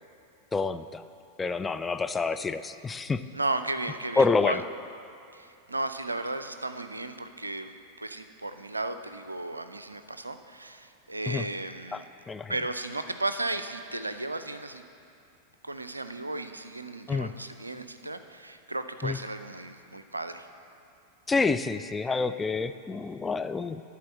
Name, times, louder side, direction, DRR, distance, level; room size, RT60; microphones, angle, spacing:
voice 1, 0.5-1.0 1.4-3.2 4.2-4.6 11.3-11.4 11.9-12.5 17.1-17.3 19.0-19.2 21.3-23.8, left 4 dB, 15° left, 10 dB, 0.3 m, -28 dB
voice 2, 3.3-4.6 5.3-12.0 12.5-14.8 15.6-20.5, right 2 dB, 80° right, 10 dB, 0.4 m, -35 dB
11.5 x 4.2 x 7.4 m, 2.6 s
figure-of-eight pair, 90°, 0 cm